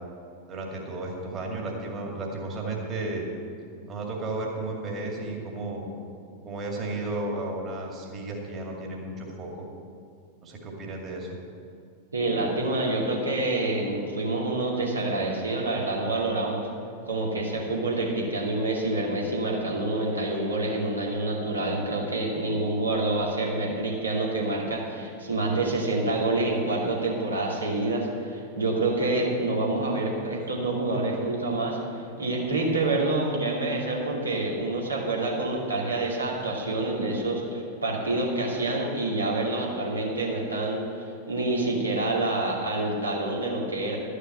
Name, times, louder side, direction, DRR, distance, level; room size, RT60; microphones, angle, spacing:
voice 1, 0.5-3.2 3.9-5.9 6.4-9.7 10.4-11.3, right 2 dB, 30° right, 0 dB, 2.3 m, -33 dB
voice 2, 12.1-16.7 17.1-40.8 41.3-44.0, right 2 dB, 80° right, -3 dB, 2.4 m, -27 dB
12.5 x 6.5 x 7.6 m, 2.4 s
figure-of-eight pair, 90°, 0 cm